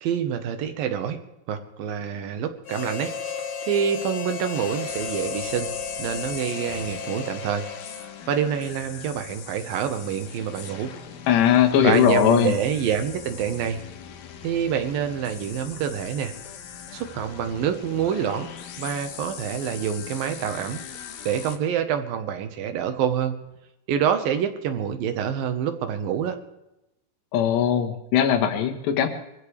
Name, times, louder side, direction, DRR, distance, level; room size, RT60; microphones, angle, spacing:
voice 1, 0.0-1.2 1.5-3.1 3.7-5.7 6.0-7.7 8.3-10.9 11.8-13.8 14.4-16.3 16.9-18.5 18.8-20.8 21.3-23.4 23.9-26.4, right 8 dB, 70° right, 8 dB, 2.7 m, -26 dB
Harmonica, 2.6-8.4, left 6 dB, 50° left, 1.6 m, -34 dB
sound 1, 4.5-21.6, left 8 dB, 70° left, 2.9 m, -40 dB
voice 2, 11.3-12.5 27.3-29.1, left 9 dB, 90° left, 4 dB, 3.6 m, -19 dB
24.0 x 15.5 x 3.4 m, 0.90 s
omnidirectional pair, 4.8 m